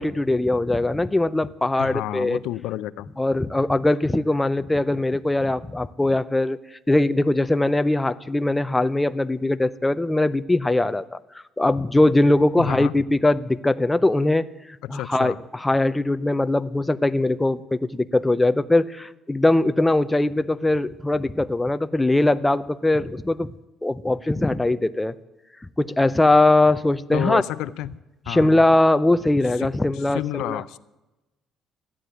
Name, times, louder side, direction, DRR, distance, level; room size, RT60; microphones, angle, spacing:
voice 1, 0.0-2.4 3.2-6.6 6.9-11.2 11.6-14.4 14.9-23.5 23.8-25.1 25.8-27.4 28.3-30.6, left 2 dB, 10° left, 12 dB, 0.5 m, -21 dB
voice 2, 1.8-3.1 12.6-12.9 14.8-15.4 27.1-27.9 28.3-28.5 29.6-29.7 29.9-30.8, left 14 dB, 85° left, 14 dB, 0.6 m, -30 dB
14.0 x 9.9 x 8.9 m, 1.0 s
cardioid pair, 130°, 0 cm